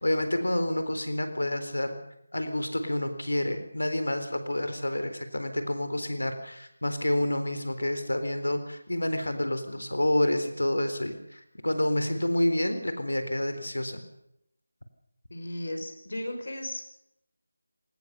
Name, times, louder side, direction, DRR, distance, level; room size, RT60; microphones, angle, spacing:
voice 1, 0.0-2.0 2.3-14.0, left 1 dB, 80° left, 9 dB, 3.9 m, -28 dB
voice 2, 15.3-16.9, left 1 dB, 60° left, 5 dB, 6.1 m, -35 dB
22.0 x 19.0 x 6.9 m, 0.78 s
figure-of-eight pair, 165°, 0 cm